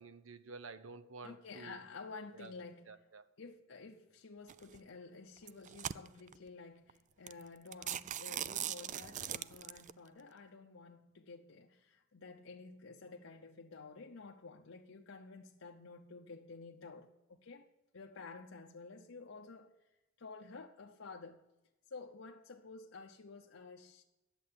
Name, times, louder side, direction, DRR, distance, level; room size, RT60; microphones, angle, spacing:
voice 1, 0.0-1.8 2.3-2.5 2.9-3.3, right 4 dB, 75° right, 0.9 m, -51 dB
voice 2, 1.2-2.9 3.4-17.7 17.9-19.7 20.2-21.4 21.9-24.0, left 4 dB, 75° left, 0.8 m, -51 dB
sound 1, 4.5-4.8 5.4-6.4 6.9-7.0 7.3-7.4 7.7-9.9, right 10 dB, 40° right, 0.4 m, -40 dB
10.5 x 7.7 x 8.6 m
head